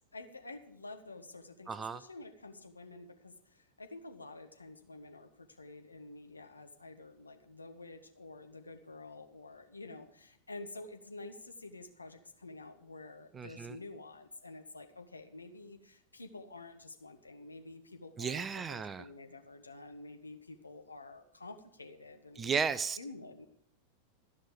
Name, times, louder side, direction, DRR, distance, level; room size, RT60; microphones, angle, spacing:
voice 1, 0.1-22.5 23.0-23.5, left 2 dB, 80° left, 6 dB, 1.2 m, -49 dB
voice 2, 1.7-2.0 13.3-13.8 18.2-19.1 22.4-23.0, right 6 dB, 20° right, 14 dB, 0.5 m, -34 dB
13.0 x 5.6 x 8.4 m, 0.68 s
figure-of-eight pair, 90°, 0 cm